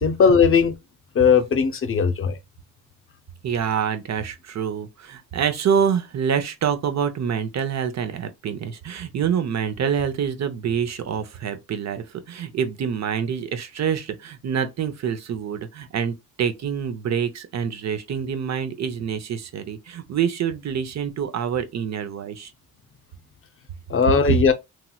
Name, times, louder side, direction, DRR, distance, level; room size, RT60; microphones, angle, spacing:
voice 1, 0.0-0.7 1.1-2.4 23.9-24.5, left 6 dB, 40° left, 0.5 m, -18 dB
voice 2, 3.4-22.5 24.3-24.4, right 7 dB, 50° right, 0.7 m, -26 dB
3.0 x 2.8 x 2.2 m
cardioid pair, 85°, 34 cm